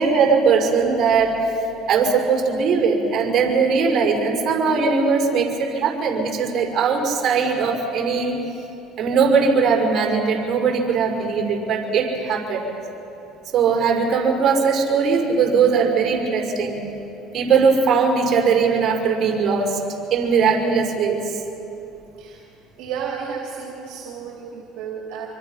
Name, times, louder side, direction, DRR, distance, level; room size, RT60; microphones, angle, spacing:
voice 1, 0.0-1.5 1.9-8.4 9.0-12.6 13.5-16.8 17.3-19.8 20.1-21.3, right 5 dB, 50° right, 1 dB, 5.7 m, -19 dB
voice 2, 22.8-25.3, right 6 dB, 70° right, -1 dB, 3.3 m, -32 dB
26.5 x 24.5 x 5.8 m, 3.0 s
supercardioid pair, 85°, 0 cm